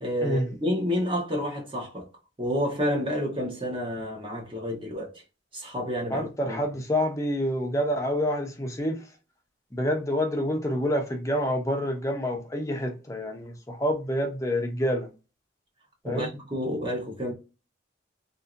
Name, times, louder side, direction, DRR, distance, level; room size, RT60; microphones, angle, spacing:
voice 1, 0.0-2.1 2.4-5.2 5.5-6.6 16.0-17.3, equal, 25° right, 1.0 m, -29 dB
voice 2, 6.1-9.0 9.7-15.1 16.0-16.3, equal, 15° left, 0.6 m, -27 dB
2.9 x 2.7 x 2.4 m
head